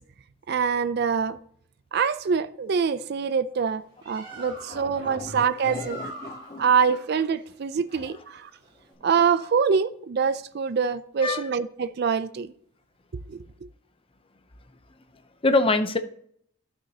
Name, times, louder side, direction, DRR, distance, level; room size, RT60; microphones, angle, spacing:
voice 1, 0.5-1.4 1.9-6.1 6.6-8.5 9.0-12.5 13.3-13.5, right 6 dB, 50° right, 0.4 m, -25 dB
Bird, 3.8-8.9, right 1 dB, 25° right, 2.6 m, -44 dB
voice 2, 4.3-6.7 7.9-8.1 11.2-11.5 15.4-16.0, left 3 dB, 25° left, 0.6 m, -27 dB
12.5 x 6.1 x 2.8 m
head